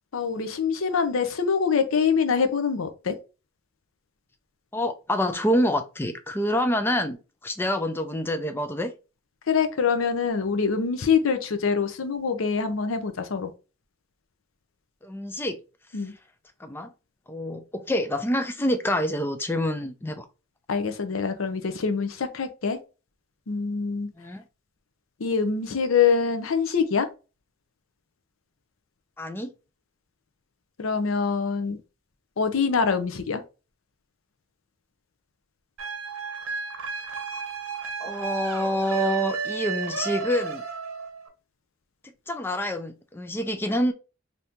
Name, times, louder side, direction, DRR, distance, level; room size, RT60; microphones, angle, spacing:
voice 1, 0.1-3.1 9.5-13.5 15.9-16.1 20.7-22.8 23.5-24.1 25.2-27.1 30.8-31.8 32.4-33.4, left 5 dB, 75° left, 0.6 m, -24 dB
voice 2, 4.7-7.2 7.4-8.9 15.0-15.6 16.6-16.9 17.3-20.3 24.2-24.4 29.2-29.5 38.0-40.6 42.3-43.9, left 1 dB, 10° left, 0.3 m, -27 dB
sound 1, 35.8-41.3, right 4 dB, 85° right, 0.8 m, -32 dB
2.8 x 2.7 x 3.4 m
head